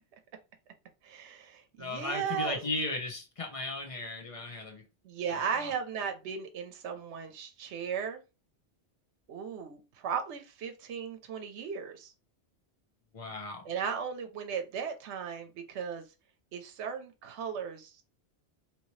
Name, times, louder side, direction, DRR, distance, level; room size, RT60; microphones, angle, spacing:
voice 1, 1.0-2.6 5.0-8.2 9.3-12.1 13.7-16.0 16.5-17.9, right 7 dB, 80° right, 0.9 m, -36 dB
voice 2, 1.8-4.8 5.3-5.7 13.1-13.7, left 2 dB, 35° left, 0.8 m, -36 dB
2.9 x 2.8 x 3.0 m
omnidirectional pair, 1.2 m